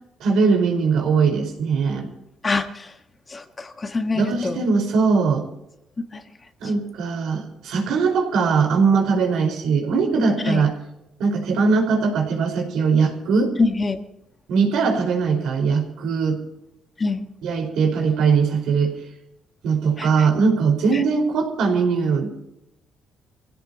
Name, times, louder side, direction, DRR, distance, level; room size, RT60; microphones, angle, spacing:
voice 1, 0.2-2.1 4.1-5.4 6.6-10.7 11.2-13.5 14.5-16.4 17.4-18.9 19.6-22.4, right 5 dB, 80° right, 2 dB, 4.9 m, -20 dB
voice 2, 2.4-2.9 3.3-4.6 6.1-6.2 10.4-10.6 13.6-14.0 17.0-17.2 20.0-20.3 20.9-21.0, left 3 dB, 25° left, 6 dB, 1.5 m, -25 dB
26.5 x 16.5 x 3.0 m, 0.86 s
cardioid pair, 110°, 0 cm